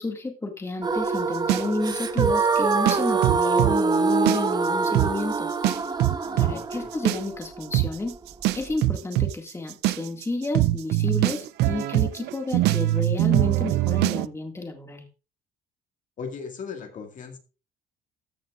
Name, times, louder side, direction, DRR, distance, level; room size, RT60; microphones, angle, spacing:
voice 1, 0.0-5.5 6.4-8.2 8.5-15.1, left 2 dB, 15° left, 3 dB, 2.0 m, -31 dB
sound 1, 0.8-8.8, right 4 dB, 25° right, 0.8 m, -25 dB
sound 2, 1.5-3.7 4.1-4.7 4.9-5.1 5.6-14.3, right 16 dB, 80° right, 0.4 m, -23 dB
voice 2, 6.2-6.9 16.2-17.4, left 5 dB, 50° left, 4 dB, 2.0 m, -37 dB
14.5 x 9.2 x 2.5 m, 0.33 s
cardioid pair, 110°, 17 cm